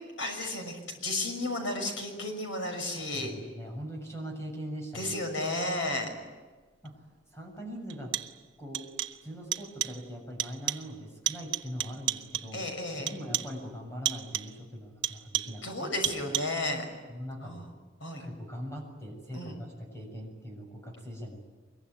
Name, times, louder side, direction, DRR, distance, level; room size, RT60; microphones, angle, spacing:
voice 1, 0.2-3.3 4.9-6.1 12.5-13.1 15.6-16.9 17.4-17.7 18.0-18.3 19.3-19.6, left 1 dB, 75° left, 4 dB, 6.1 m, -33 dB
voice 2, 3.1-5.2 6.8-6.9 7.3-8.1 8.6-8.9 9.2-12.7 13.0-15.9 17.1-17.7 18.2-21.4, equal, 15° left, 1 dB, 7.0 m, -41 dB
sound 1, 6.9-7.0 7.9-8.5 8.7-9.3 9.5-10.1 10.4-11.0 11.3-12.6 13.1-13.6 14.1-14.6 15.0-15.7 16.0-16.7, right 12 dB, 70° right, 1.0 m, -34 dB
24.5 x 22.5 x 9.6 m, 1.3 s
head